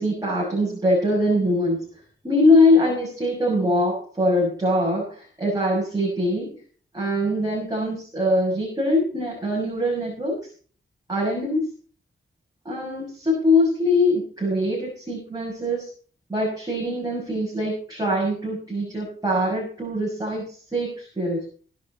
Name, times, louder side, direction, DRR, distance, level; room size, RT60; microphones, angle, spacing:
voice 1, 0.0-6.5 6.9-10.5 11.1-11.6 12.7-15.9 16.3-21.4, left 1 dB, 20° right, -3 dB, 6.9 m, -23 dB
17.5 x 11.0 x 4.4 m, 0.42 s
wide cardioid pair, 110°, 21 cm